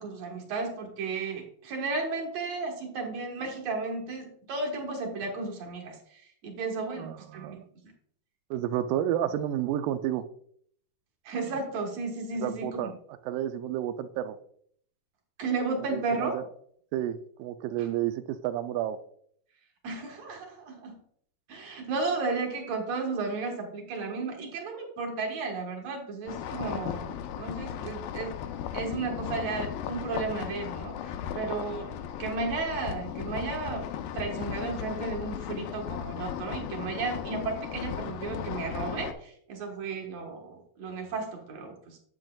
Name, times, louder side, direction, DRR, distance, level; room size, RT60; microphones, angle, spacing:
voice 1, 0.0-7.6 11.3-12.9 15.4-16.3 19.8-21.0 21.5-28.4 28.7-31.9 32.2-33.9 34.1-42.0, right 3 dB, 55° right, 1 dB, 2.1 m, -34 dB
voice 2, 7.0-7.7 8.5-10.3 12.3-13.0 13.3-14.4 15.8-16.4 16.9-19.0, right 11 dB, 80° right, 11 dB, 2.1 m, -31 dB
sound 1, 26.3-39.1, left 9 dB, 80° left, 2.1 m, -36 dB
9.8 x 7.6 x 2.3 m, 0.63 s
omnidirectional pair, 4.2 m